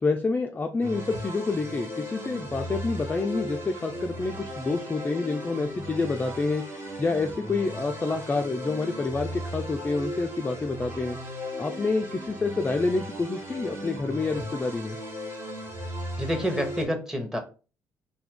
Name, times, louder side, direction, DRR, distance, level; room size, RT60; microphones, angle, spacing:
voice 1, 0.0-11.2 11.6-15.0, left 3 dB, 20° left, 4 dB, 0.3 m, -28 dB
sound 1, 0.8-16.9, equal, 35° right, 1.2 m, -37 dB
voice 2, 16.2-17.4, equal, 5° right, 5 dB, 0.9 m, -28 dB
2.7 x 2.4 x 3.5 m, 0.34 s
hypercardioid pair, 60°, 8 cm